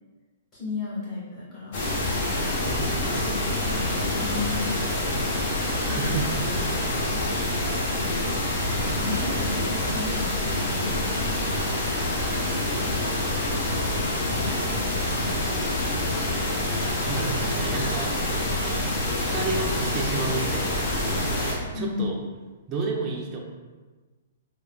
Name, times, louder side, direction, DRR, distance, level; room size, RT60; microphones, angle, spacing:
voice 1, 0.5-1.9 3.0-4.6 5.8-6.2 6.5-7.3 8.9-11.4 14.1-15.7 21.7-22.2, left 3 dB, 25° left, -9 dB, 1.4 m, -35 dB
sound 1, 1.7-21.5, left 1 dB, 50° left, 0.8 m, -26 dB
voice 2, 2.7-3.0 5.9-6.4 9.3-9.5 12.7-13.2 16.9-18.2 19.1-22.2 22.7-23.4, right 3 dB, 30° right, -1 dB, 0.4 m, -32 dB
3.3 x 2.1 x 2.2 m, 1.3 s
hypercardioid pair, 130°, 0 cm